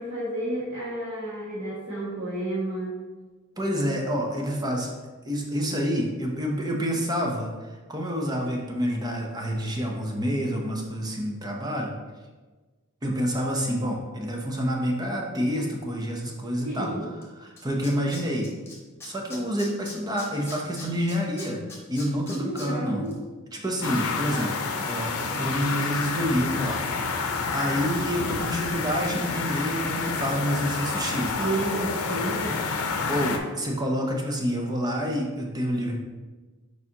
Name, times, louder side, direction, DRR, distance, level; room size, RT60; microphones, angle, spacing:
voice 1, 0.0-2.9 16.6-17.1 22.3-23.1 31.3-32.7, right 1 dB, 65° right, -10 dB, 1.6 m, -31 dB
voice 2, 3.6-4.9 5.2-11.9 13.0-18.5 19.0-21.6 21.9-23.1 23.5-24.5 24.9-31.5 33.1-36.0, equal, 20° right, 0 dB, 0.7 m, -28 dB
Tools, 17.2-17.3 17.6-18.7 19.0-22.7 23.1-23.2, left 2 dB, 10° left, 1.1 m, -41 dB
sound 1, 23.8-33.4, left 4 dB, 85° left, 0.6 m, -29 dB
6.7 x 4.8 x 2.9 m, 1.3 s
head